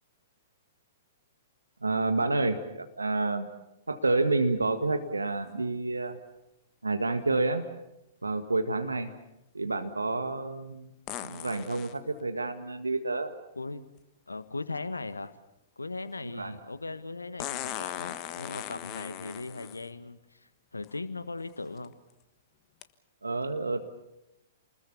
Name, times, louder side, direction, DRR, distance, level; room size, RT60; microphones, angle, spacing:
voice 1, 1.8-3.5 3.9-6.2 6.8-7.6 8.2-9.1 9.5-10.9 11.2-13.3 16.3-16.5 23.2-23.8, right 3 dB, 80° right, 8 dB, 1.7 m, -29 dB
sound 1, 11.1-12.0 14.0-14.1 17.4-19.9 20.8-20.9 21.6-21.9 22.8-22.9, left 12 dB, 30° left, 1.3 m, -38 dB
voice 2, 13.5-13.8 14.3-15.3 15.8-20.4 20.7-21.9, left 3 dB, 80° left, 12 dB, 1.5 m, -38 dB
28.5 x 21.0 x 7.0 m, 0.88 s
figure-of-eight pair, 110°, 0 cm